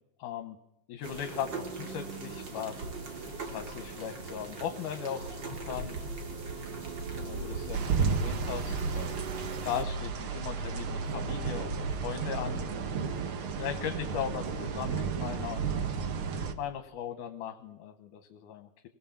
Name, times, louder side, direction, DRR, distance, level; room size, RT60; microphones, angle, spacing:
voice 1, 0.2-0.6 0.9-3.2 3.5-6.0 7.2-9.1 9.6-12.6 13.6-15.9 16.4-18.9, left 9 dB, 75° left, 7 dB, 2.4 m, -38 dB
sound 1, 1.0-9.8, right 3 dB, 35° right, 2.5 m, -39 dB
sound 2, 7.7-16.5, right 5 dB, 55° right, 1.6 m, -33 dB
25.0 x 18.0 x 7.2 m, 0.87 s
omnidirectional pair, 3.8 m